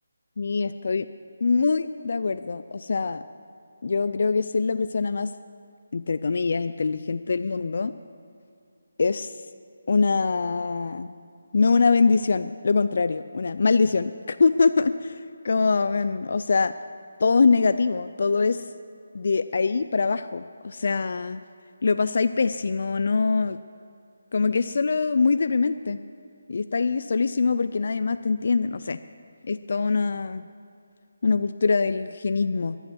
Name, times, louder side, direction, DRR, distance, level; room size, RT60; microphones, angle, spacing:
voice 1, 0.4-1.1 1.4-3.2 3.8-5.3 5.9-7.9 9.0-9.3 9.9-11.1 11.5-16.7 17.2-18.6 19.1-21.4 21.8-23.6 24.3-26.0 26.5-29.0 29.5-30.4 31.2-32.8, left 4 dB, 55° left, 12 dB, 0.4 m, -23 dB
22.0 x 7.9 x 6.2 m, 2.4 s
figure-of-eight pair, 155°, 0 cm